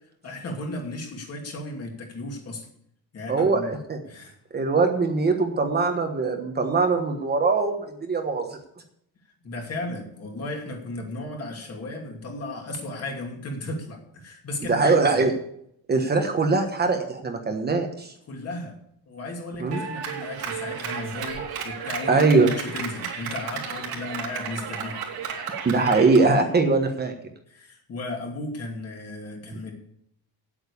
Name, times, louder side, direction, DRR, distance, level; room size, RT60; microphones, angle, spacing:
voice 1, 0.2-2.7 3.1-3.7 4.0-4.3 9.4-15.2 18.3-18.8 19.1-25.0 27.5-29.7, left 2 dB, 40° left, 1 dB, 2.7 m, -35 dB
voice 2, 3.3-4.0 4.5-8.6 14.7-15.3 15.9-18.1 19.6-19.8 21.4-21.5 22.1-22.5 25.6-27.1 29.5-29.6, right 3 dB, 25° right, 4 dB, 1.2 m, -22 dB
Clapping, 19.7-26.3, right 6 dB, 75° right, 2.9 m, -33 dB
9.1 x 8.5 x 8.5 m, 0.71 s
cardioid pair, 170°, 38 cm